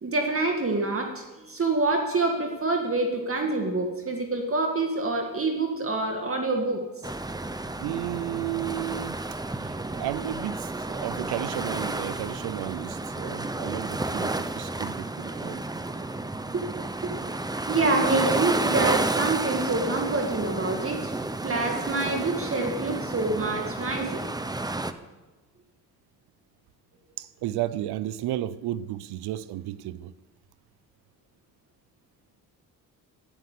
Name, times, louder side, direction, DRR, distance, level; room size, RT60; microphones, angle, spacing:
voice 1, 0.0-6.8 10.0-10.1 16.5-16.6 17.0-17.2 17.7-21.1 21.4-24.2, right 3 dB, 35° right, 2.1 m, -26 dB
sound 1, 7.0-24.9, right 2 dB, 10° right, 0.9 m, -31 dB
voice 2, 7.8-9.2 9.6-15.6 27.2-30.1, right 13 dB, 90° right, 0.7 m, -33 dB
12.0 x 11.0 x 8.4 m
cardioid pair, 85°, 38 cm